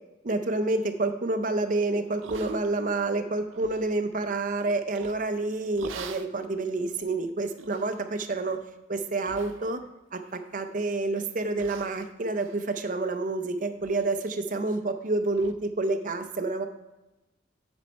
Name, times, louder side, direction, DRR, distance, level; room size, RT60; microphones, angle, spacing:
voice 1, 0.2-8.6 8.9-9.8 10.1-16.7, right 2 dB, 45° right, 7 dB, 0.6 m, -28 dB
sound 1, 2.2-3.0 3.4-3.9 4.9-5.3 5.8-6.3 6.9-7.0 7.6-8.0 8.4-8.7 9.2-9.9 10.2-10.8 11.2-11.3 11.6-13.4 13.8-14.1 14.3-14.4 14.9-15.0 15.3-15.5, right 5 dB, 85° right, 0.5 m, -45 dB
8.0 x 5.3 x 4.5 m, 1.0 s
head